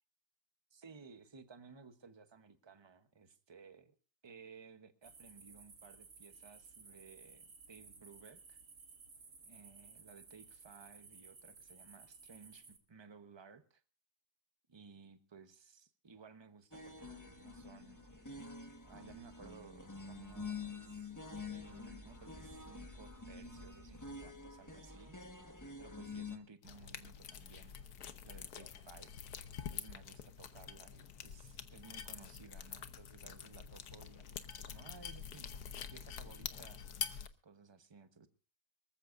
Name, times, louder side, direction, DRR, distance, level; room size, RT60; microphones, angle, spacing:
voice 1, 0.7-3.9 4.2-8.6 9.5-13.8 14.7-18.0 18.9-21.2 21.5-25.2 25.8-27.8 28.2-29.2 29.7-36.8 37.4-38.3, right 5 dB, 20° right, 9 dB, 0.7 m, -58 dB
sound 1, 5.0-12.8, right 4 dB, 55° right, 2.3 m, -57 dB
sound 2, 16.7-26.4, left 4 dB, 10° left, 1.3 m, -48 dB
sound 3, 26.6-37.3, left 8 dB, 65° left, 1.4 m, -46 dB
24.5 x 14.5 x 2.5 m, 0.35 s
omnidirectional pair, 1.9 m